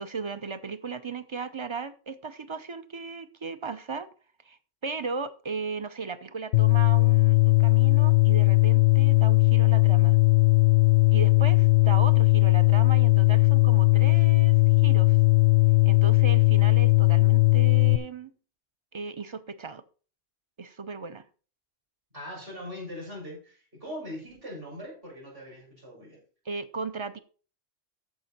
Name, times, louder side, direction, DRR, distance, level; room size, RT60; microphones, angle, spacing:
voice 1, 0.0-4.1 4.4-10.2 11.1-15.2 15.8-18.3 18.9-19.8 20.6-21.2 26.5-27.2, right 4 dB, 30° right, 13 dB, 0.7 m, -36 dB
sound 1, 6.5-18.0, left 22 dB, 80° left, 0.9 m, -19 dB
voice 2, 22.1-26.2, left 1 dB, 55° right, -3 dB, 6.2 m, -41 dB
13.5 x 5.3 x 4.3 m, 0.38 s
omnidirectional pair, 1.1 m